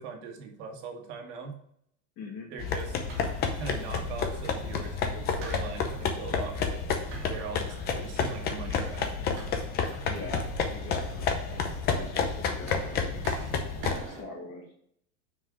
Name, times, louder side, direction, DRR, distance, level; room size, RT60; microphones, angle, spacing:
voice 1, 0.0-1.5 2.5-3.2 3.6-7.0 7.3-9.4, right 5 dB, 65° right, 3 dB, 1.7 m, -41 dB
voice 2, 2.2-2.5 10.1-13.1 13.7-14.7, left 3 dB, 45° left, 0 dB, 2.2 m, -42 dB
sound 1, 2.6-14.0, left 6 dB, 25° left, 0.7 m, -31 dB
sound 2, 2.7-14.2, right 4 dB, 35° right, 1.8 m, -43 dB
6.1 x 4.9 x 4.8 m, 0.69 s
supercardioid pair, 170°, 37 cm